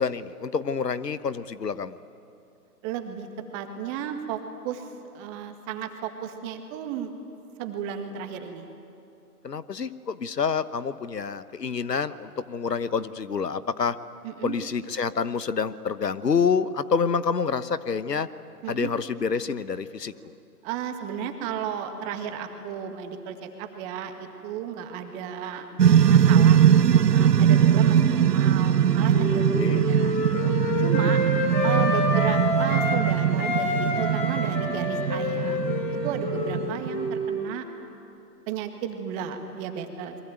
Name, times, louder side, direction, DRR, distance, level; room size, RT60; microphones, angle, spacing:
voice 1, 0.0-2.0 9.4-14.0 14.4-18.3 18.7-20.1 29.5-29.8 30.3-30.6, left 6 dB, 80° left, 14 dB, 1.2 m, -27 dB
voice 2, 2.8-3.3 3.5-7.1 7.6-8.7 14.2-14.6 18.6-18.9 20.6-25.7 26.1-30.2 30.8-31.2 31.6-35.6 36.0-37.7 38.5-40.2, right 8 dB, 20° right, 6 dB, 1.9 m, -34 dB
sound 1, 25.8-37.2, right 9 dB, 80° right, 0.7 m, -21 dB
Wind instrument woodwind instrument, 28.5-33.0 33.3-37.8, left 2 dB, 30° left, 5.6 m, -28 dB
28.5 x 23.0 x 9.1 m, 2.7 s
figure-of-eight pair, 140°, 48 cm